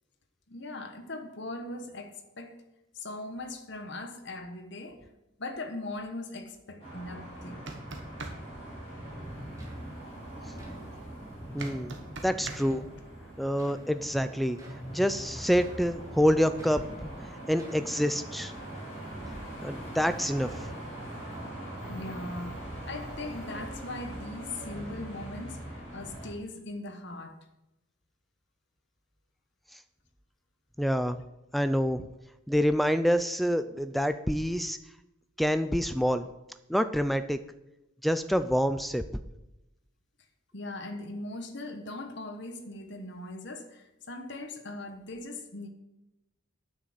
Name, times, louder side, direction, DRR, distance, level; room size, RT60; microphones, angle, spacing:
voice 1, 0.5-2.6 2.9-5.0 5.4-7.6 13.7-13.8 21.9-22.6 22.9-27.4 40.5-45.7, left 2 dB, 55° left, 1.2 m, -40 dB
sound 1, 6.8-26.3, right 1 dB, 30° left, 4.7 m, -42 dB
sound 2, 7.5-8.4 11.6-12.6, right 3 dB, 55° right, 1.3 m, -39 dB
sound 3, 9.2-9.3 9.6-10.1 10.6-10.8 11.6-11.9 12.6-12.9 13.6-13.9 14.6-14.9 15.6-15.9 16.6-16.9 17.5-17.9, right 3 dB, 15° right, 1.9 m, -53 dB
voice 2, 11.5-11.9 12.2-12.8 13.4-14.6 14.9-17.1 17.5-18.5 19.6-20.5 30.8-31.2 31.5-32.1 32.5-34.8 35.4-36.3 36.7-37.4 38.0-39.0, equal, ahead, 0.3 m, -27 dB
9.4 x 6.4 x 7.5 m
head